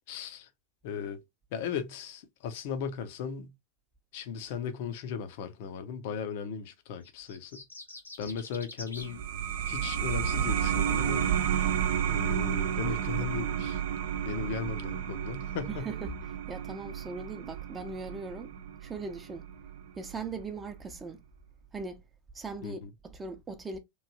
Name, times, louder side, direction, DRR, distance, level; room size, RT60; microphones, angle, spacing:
voice 1, 0.1-0.5 0.8-1.2 1.5-3.5 4.1-7.6 8.2-9.2 9.7-11.3 11.9-13.8 14.2-15.9 22.6-22.9, left 7 dB, 55° left, 0.6 m, -37 dB
sound 1, 7.0-9.1, left 2 dB, 90° left, 0.8 m, -45 dB
sound 2, 9.0-20.1, right 9 dB, 60° right, 0.5 m, -31 dB
voice 2, 15.7-16.1 16.5-18.5 18.8-19.5 20.0-21.2 21.7-22.0 22.3-23.8, right 4 dB, 15° right, 0.6 m, -39 dB
3.1 x 2.6 x 2.5 m
figure-of-eight pair, 90°, 0 cm